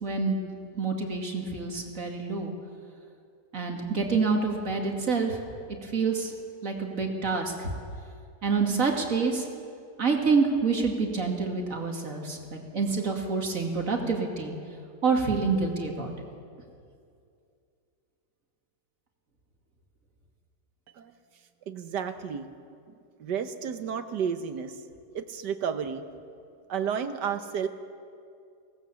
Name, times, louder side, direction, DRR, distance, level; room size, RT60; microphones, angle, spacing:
voice 1, 0.0-0.4 0.8-2.5 3.5-5.4 5.8-6.3 6.6-7.7 8.4-9.4 10.0-14.5 15.0-16.1, right 4 dB, 50° right, 1 dB, 2.7 m, -27 dB
voice 2, 21.7-22.5 23.2-24.8 25.1-26.0 26.7-27.7, right 7 dB, 85° right, 9 dB, 1.7 m, -31 dB
23.5 x 18.5 x 7.0 m, 2.4 s
omnidirectional pair, 1.8 m